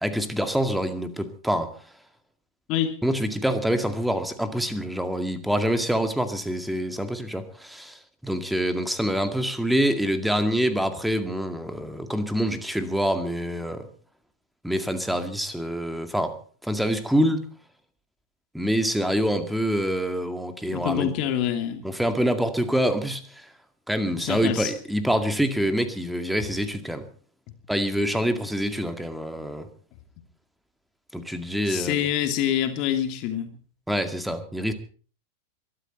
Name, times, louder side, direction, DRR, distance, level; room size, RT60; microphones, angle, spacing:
voice 1, 0.0-1.7 3.0-8.0 8.2-13.9 14.6-16.4 16.6-17.5 18.5-21.1 21.8-23.2 23.9-27.1 27.7-29.7 31.1-32.1 33.9-34.7, equal, ahead, 2.1 m, -26 dB
voice 2, 20.7-21.9 24.2-24.7 31.7-33.5, left 10 dB, 40° left, 2.8 m, -26 dB
23.0 x 12.5 x 4.4 m
figure-of-eight pair, 90°, 0 cm